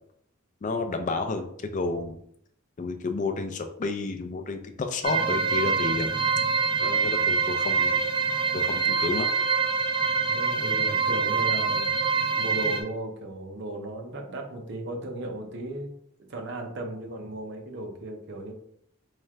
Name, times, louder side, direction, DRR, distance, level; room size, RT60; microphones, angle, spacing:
voice 1, 0.6-2.1 2.8-6.1 6.8-8.0 8.5-9.3, left 3 dB, 40° left, 7 dB, 0.4 m, -30 dB
sound 1, 5.0-12.8, right 5 dB, 25° right, 0.4 m, -25 dB
voice 2, 10.3-11.9 12.4-15.9 16.2-18.5, right 1 dB, 60° right, 2 dB, 0.7 m, -35 dB
3.2 x 2.4 x 4.3 m, 0.70 s
head